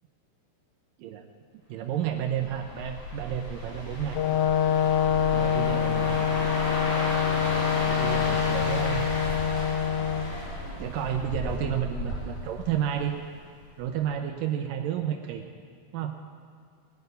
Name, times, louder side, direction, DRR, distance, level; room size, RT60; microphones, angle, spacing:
voice 1, 1.7-4.2 5.3-6.5 7.9-9.1 10.8-13.2 13.8-15.4 15.9-16.2, right 9 dB, 85° right, 5 dB, 1.9 m, -31 dB
sound 1, 2.2-13.3 13.7-13.9, left 1 dB, 55° left, 6.4 m, -34 dB
Brass instrument, 4.1-10.3, left 9 dB, 90° left, 1.7 m, -25 dB
19.0 x 6.8 x 9.4 m, 2.1 s
omnidirectional pair, 4.8 m